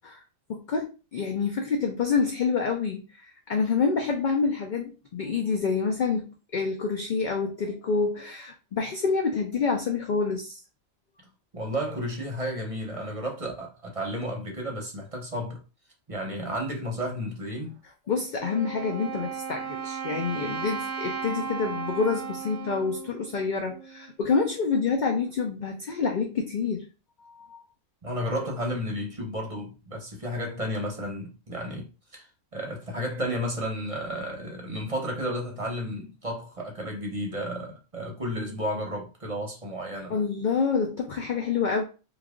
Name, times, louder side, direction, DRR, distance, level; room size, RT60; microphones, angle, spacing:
voice 1, 0.5-10.6 18.1-26.9 27.2-27.6 40.1-41.8, left 5 dB, 55° left, 0.5 m, -27 dB
voice 2, 11.5-15.6 16.1-17.8 28.0-31.9 32.1-32.3 32.5-40.2, equal, 30° right, 0.9 m, -32 dB
Wind instrument woodwind instrument, 18.4-24.1, right 6 dB, 75° right, 0.9 m, -35 dB
3.2 x 2.4 x 3.6 m
omnidirectional pair, 1.3 m